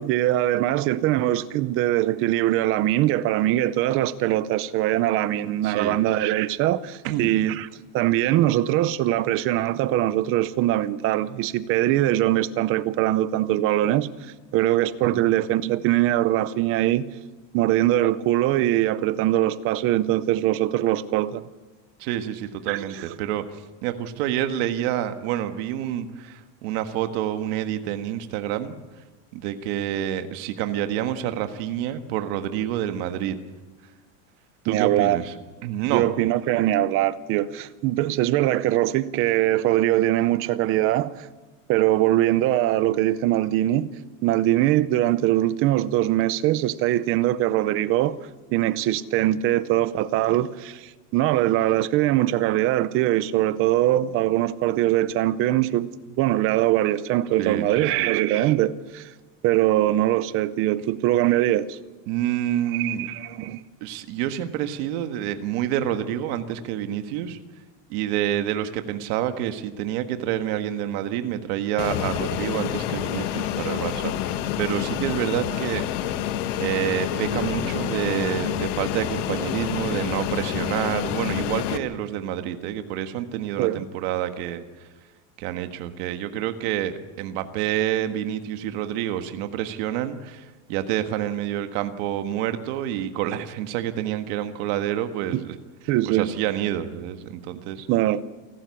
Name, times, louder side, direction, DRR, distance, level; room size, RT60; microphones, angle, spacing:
voice 1, 0.0-14.1 14.5-17.1 17.5-21.4 22.7-23.0 34.7-35.2 35.9-41.3 41.7-43.9 44.2-48.2 48.5-59.1 59.4-61.8 62.7-63.6 83.6-83.8 95.3-95.4 95.9-96.3 97.9-98.2, right 14 dB, 35° right, 0.6 m, -22 dB
voice 2, 5.6-6.0 7.0-7.3 15.0-15.2 22.0-23.4 23.8-28.8 29.3-33.4 34.6-35.3 35.6-36.0 57.4-57.9 62.1-63.1 63.8-67.4 67.9-76.1 76.6-84.6 85.4-95.6 96.0-97.9, right 11 dB, 55° right, 1.5 m, -28 dB
Fixed-wing aircraft airplane, 71.8-81.8, left 11 dB, 65° left, 1.6 m, -28 dB
28.5 x 12.5 x 8.4 m
cardioid pair, 175°, 40 cm